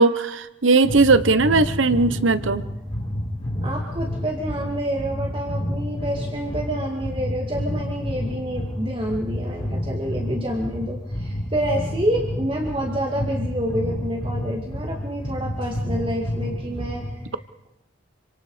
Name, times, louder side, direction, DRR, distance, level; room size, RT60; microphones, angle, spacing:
voice 1, 0.0-2.6, right 3 dB, 85° right, 14 dB, 1.0 m, -18 dB
sound 1, 0.8-17.2, equal, 30° left, 5.9 m, -29 dB
voice 2, 3.6-17.0 17.3-17.4, equal, 30° right, 0 dB, 2.4 m, -28 dB
27.0 x 25.5 x 5.0 m, 0.87 s
head